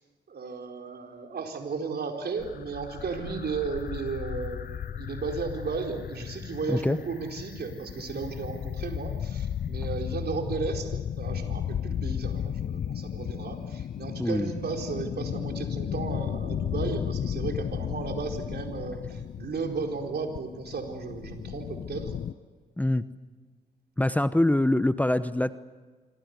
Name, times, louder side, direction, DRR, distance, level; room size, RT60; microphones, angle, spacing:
voice 1, 0.3-22.2, right 4 dB, 55° right, 3 dB, 4.4 m, -34 dB
sound 1, 2.4-22.3, left 9 dB, 50° left, 0.8 m, -34 dB
voice 2, 14.2-14.5 22.8-23.0 24.0-25.6, left 1 dB, 5° left, 14 dB, 0.9 m, -24 dB
26.0 x 23.5 x 8.2 m, 1.4 s
hypercardioid pair, 45°, 20 cm